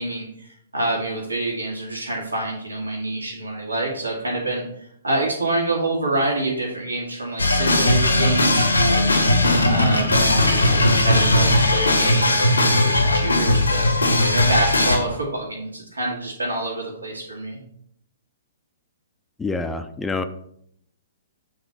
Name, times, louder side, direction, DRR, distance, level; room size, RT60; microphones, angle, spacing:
voice 1, 0.0-4.6 5.0-9.1 9.6-13.9 14.3-17.6, right 2 dB, 75° right, -1 dB, 1.7 m, -27 dB
sound 1, 7.4-15.0, left 2 dB, 80° left, 1.3 m, -18 dB
voice 2, 19.4-20.2, left 3 dB, 10° left, 9 dB, 0.4 m, -26 dB
7.8 x 3.9 x 5.4 m, 0.70 s
figure-of-eight pair, 115°, 0 cm